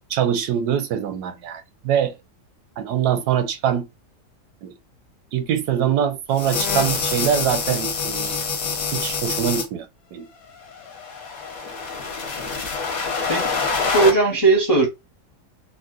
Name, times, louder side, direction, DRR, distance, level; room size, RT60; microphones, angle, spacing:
voice 1, 0.1-2.2 2.8-3.9 4.6-4.7 5.3-8.4 8.9-10.3, right 9 dB, 80° right, 1.1 m, -23 dB
sound 1, 6.3-9.6 10.8-14.1, left 5 dB, 65° left, 1.2 m, -26 dB
voice 2, 13.8-14.9, right 3 dB, 25° left, 0.5 m, -17 dB
3.7 x 2.1 x 2.3 m
omnidirectional pair, 1.7 m